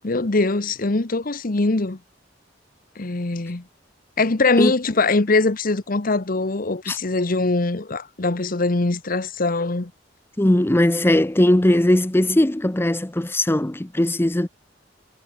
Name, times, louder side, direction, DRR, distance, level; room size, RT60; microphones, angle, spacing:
voice 1, 0.0-2.0 3.0-3.6 4.2-9.9, left 3 dB, 50° left, 1.1 m, -22 dB
voice 2, 10.4-14.5, left 1 dB, 15° left, 0.7 m, -19 dB
head